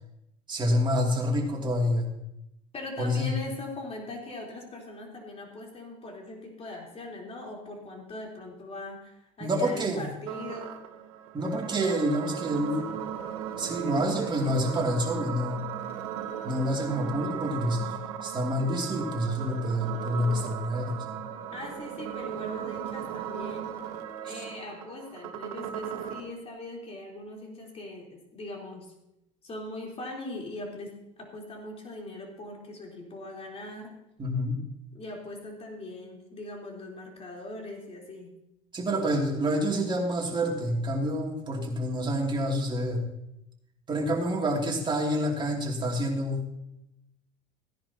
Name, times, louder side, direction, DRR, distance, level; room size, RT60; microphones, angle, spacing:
voice 1, 0.5-2.1 3.0-3.3 9.4-10.1 11.3-12.9 13.6-15.6 16.4-21.1 24.3-24.4 34.2-34.6 38.7-43.0 43.9-46.4, equal, 25° right, 0 dB, 2.8 m, -28 dB
voice 2, 2.7-10.9 21.5-23.8 24.2-28.9 29.4-33.9 34.9-38.3, left 2 dB, 35° left, -1 dB, 3.9 m, -41 dB
sound 1, 10.3-26.3, right 9 dB, 80° right, 1.2 m, -37 dB
16.5 x 10.5 x 2.9 m, 0.87 s
hypercardioid pair, 80°, 18 cm